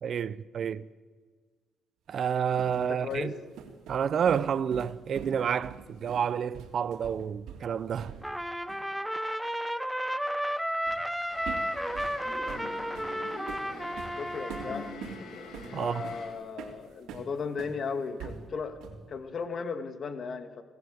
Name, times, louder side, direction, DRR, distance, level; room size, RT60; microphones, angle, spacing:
voice 1, 0.0-0.9 2.1-3.3 3.9-8.1 15.7-16.1, right 8 dB, 55° right, 0.6 m, -29 dB
sound 1, 2.2-8.4 8.7-8.9 10.9-11.1 11.5-17.8 18.2-19.1, right 7 dB, 85° right, 3.0 m, -45 dB
voice 2, 2.9-3.3 14.1-14.9 15.8-18.8 19.1-20.6, left 5 dB, 50° left, 2.1 m, -36 dB
Trumpet, 8.2-15.0, equal, 5° right, 1.0 m, -33 dB
sound 2, 11.3-16.3, left 3 dB, 70° left, 5.8 m, -44 dB
26.0 x 17.5 x 7.9 m
cardioid pair, 90°, 0 cm